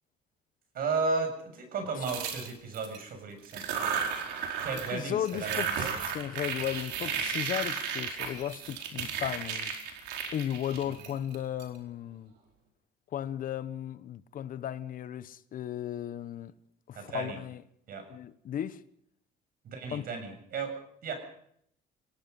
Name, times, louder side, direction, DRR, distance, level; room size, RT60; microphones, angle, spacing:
voice 1, 0.7-3.9 4.6-5.9 17.0-17.4 17.9-18.1 19.6-20.7 21.0-21.1, right 4 dB, 60° right, 7.2 m, -34 dB
sound 1, 2.0-3.0 3.4-5.0 5.2-11.6, right 7 dB, 85° right, 4.4 m, -34 dB
voice 2, 4.9-9.8 10.3-12.3 13.1-16.5 16.9-17.6 18.1-18.8 19.9-20.0, left 10 dB, 55° left, 1.1 m, -35 dB
26.5 x 18.0 x 5.5 m
cardioid pair, 110°, 17 cm